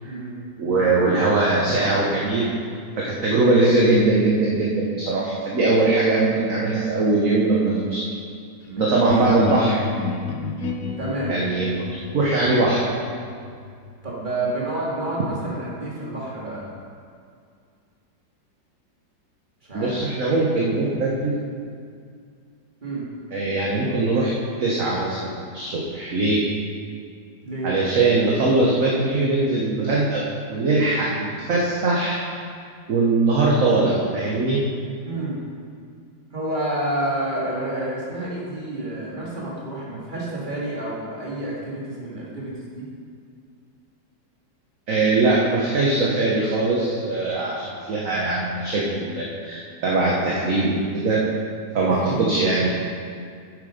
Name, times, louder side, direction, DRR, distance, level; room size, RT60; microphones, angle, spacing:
voice 1, 0.0-0.4 8.6-9.1 11.0-11.3 14.0-16.7 19.6-20.0 22.8-23.1 27.4-27.7 35.0-35.4 36.3-42.9 51.9-52.2, right 1 dB, 25° right, -6 dB, 2.2 m, -29 dB
voice 2, 0.6-2.5 3.0-8.0 8.8-9.8 11.3-12.8 19.7-21.4 23.3-24.3 24.6-25.3 25.5-26.4 27.6-32.2 32.9-34.6 44.9-51.2 51.7-52.7, right 2 dB, 50° right, -4 dB, 1.4 m, -21 dB
sound 1, 9.1-14.7, left 4 dB, 60° left, 1.1 m, -31 dB
8.7 x 7.4 x 5.1 m, 2.2 s
omnidirectional pair, 2.0 m